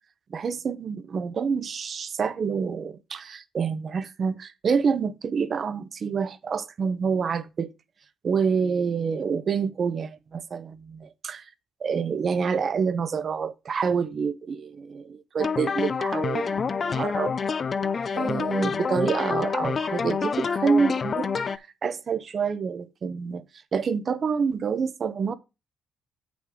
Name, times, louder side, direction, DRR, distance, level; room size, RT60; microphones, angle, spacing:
voice 1, 0.3-7.7 8.2-11.4 11.8-17.3 18.1-23.4 23.7-25.3, right 6 dB, 50° right, 1.0 m, -27 dB
sound 1, 15.4-21.6, left 5 dB, 40° left, 0.6 m, -27 dB
7.9 x 6.0 x 3.8 m
cardioid pair, 90°, 0 cm